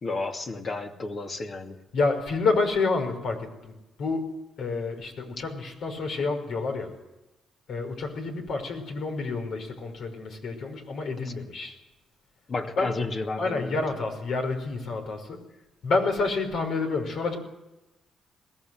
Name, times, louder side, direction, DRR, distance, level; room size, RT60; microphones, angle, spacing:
voice 1, 0.0-1.8 11.2-11.3 12.5-13.8, left 3 dB, 45° left, 3 dB, 2.6 m, -32 dB
voice 2, 1.9-3.7 4.0-4.2 4.6-6.9 7.7-11.7 12.8-13.0 13.4-15.4 15.8-17.4, left 3 dB, 70° left, 4 dB, 5.4 m, -28 dB
21.5 x 18.5 x 7.8 m, 1.0 s
cardioid pair, 85°, 0 cm